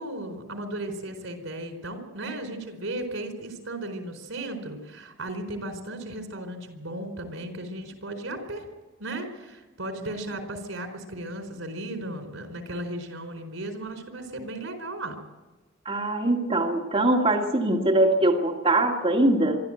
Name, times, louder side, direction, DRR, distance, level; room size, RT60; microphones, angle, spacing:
voice 1, 0.0-8.6 9.0-15.2, right 1 dB, 85° right, 6 dB, 4.5 m, -35 dB
voice 2, 15.9-19.6, right 1 dB, 30° right, -1 dB, 2.1 m, -22 dB
24.0 x 13.0 x 9.1 m, 1.1 s
head